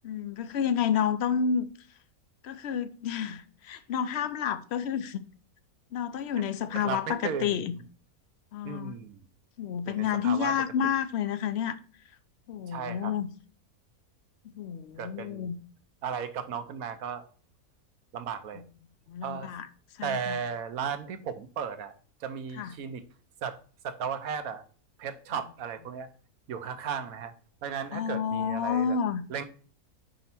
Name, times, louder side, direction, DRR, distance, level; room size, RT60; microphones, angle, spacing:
voice 1, 0.0-1.7 2.4-5.2 5.9-7.7 8.5-8.9 9.6-11.8 12.5-13.3 14.6-15.6 19.1-19.7 20.0-20.4 22.5-22.7 27.9-29.2, left 7 dB, 60° left, 0.7 m, -30 dB
voice 2, 6.7-7.6 8.6-9.2 9.9-10.5 10.8-10.9 12.7-13.1 15.0-15.5 16.0-17.2 18.1-18.6 19.2-19.5 20.0-21.9 22.2-23.0 23.4-23.6 23.8-24.6 25.0-26.1 26.5-27.3 27.6-29.0 29.3-29.4, right 7 dB, 70° right, 1.2 m, -35 dB
5.5 x 5.2 x 5.9 m
omnidirectional pair, 1.6 m